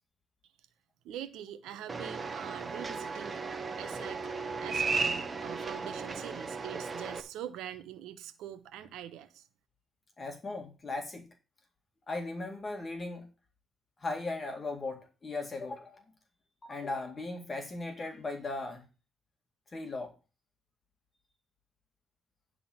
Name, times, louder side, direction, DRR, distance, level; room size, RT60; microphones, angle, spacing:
voice 1, 1.0-3.4 3.8-4.3 4.6-9.4, right 11 dB, 90° right, 1.0 m, -44 dB
sound 1, 1.9-7.2, right 4 dB, 30° right, 1.2 m, -35 dB
voice 2, 10.2-11.3 12.1-13.3 14.0-16.0 16.6-18.8 19.7-20.1, left 3 dB, 35° left, 2.1 m, -37 dB
10.5 x 3.8 x 7.3 m
cardioid pair, 90°, 0 cm